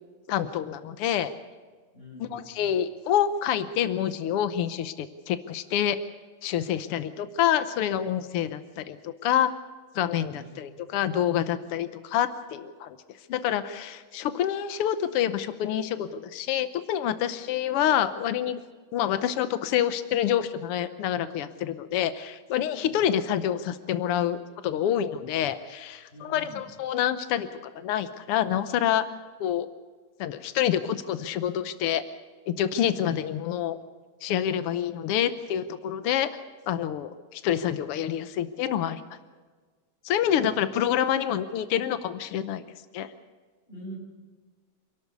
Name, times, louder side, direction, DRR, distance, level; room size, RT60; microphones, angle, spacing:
voice 1, 0.3-1.3 2.2-6.0 6.4-9.5 9.9-13.0 13.3-18.6 18.9-27.5 27.7-29.0 29.4-29.7 30.2-32.0 32.5-33.8 34.2-36.3 36.7-39.2 40.0-42.6 42.9-43.1, left 10 dB, 80° left, 12 dB, 1.2 m, -27 dB
voice 2, 1.9-2.4 10.3-10.6 10.9-11.5 22.9-23.1 26.1-26.7 40.2-40.6 43.7-44.0, right 1 dB, 15° left, -2 dB, 8.1 m, -45 dB
27.0 x 12.5 x 8.2 m, 1.4 s
omnidirectional pair, 3.7 m